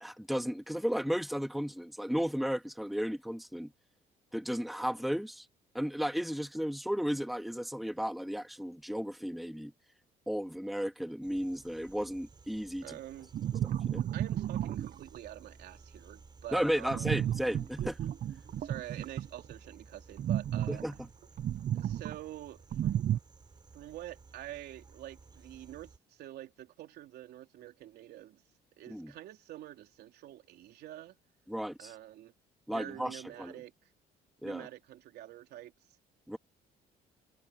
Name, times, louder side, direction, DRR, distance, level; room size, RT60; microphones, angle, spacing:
voice 1, 0.0-3.7 4.3-5.5 5.7-9.7 10.3-13.0 13.8-14.1 16.5-18.0 20.7-21.0 28.9-29.1 31.5-31.9 32.7-33.5 34.4-34.7 36.3-36.4, equal, ahead, 2.0 m, -34 dB
sound 1, 11.2-26.0, right 4 dB, 25° right, 7.8 m, -56 dB
voice 2, 12.8-13.3 14.1-17.2 18.6-20.8 21.7-23.1 23.7-28.4 28.8-31.2 31.8-32.3 32.7-33.9 34.4-36.0, right 13 dB, 75° right, 3.4 m, -47 dB
sound 2, 13.3-15.2 16.9-19.5 20.2-22.2 22.7-23.2, right 11 dB, 50° right, 0.6 m, -32 dB
cardioid pair, 110°, 17 cm